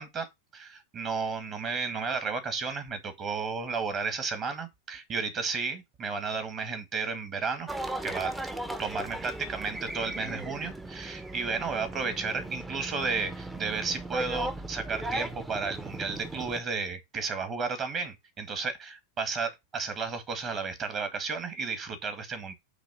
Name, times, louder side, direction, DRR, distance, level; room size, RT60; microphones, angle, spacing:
voice 1, 0.0-7.7 8.0-8.3 8.8-22.5, right 4 dB, 30° right, 1.7 m, -33 dB
sound 1, 7.7-16.6, right 1 dB, 10° right, 0.7 m, -37 dB
8.1 x 3.2 x 5.1 m
figure-of-eight pair, 90°, 0 cm